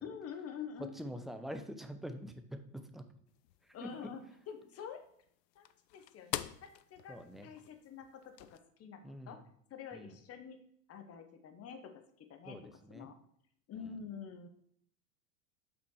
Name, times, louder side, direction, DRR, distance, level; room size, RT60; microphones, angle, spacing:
voice 1, 0.0-1.0 3.7-5.0 5.5-7.2 7.4-9.4 9.7-10.6 10.9-11.8 12.2-12.6 12.9-13.1 13.7-14.5, left 7 dB, 30° left, 6 dB, 1.0 m, -47 dB
voice 2, 0.8-3.0 3.8-4.1 7.1-7.5 9.0-9.4 9.9-10.2 12.5-13.1 13.9-14.0, equal, ahead, 7 dB, 0.5 m, -45 dB
sound 1, 3.3-8.6, left 14 dB, 80° left, 0.6 m, -47 dB
5.8 x 4.3 x 6.2 m, 0.67 s
hypercardioid pair, 100°, 48 cm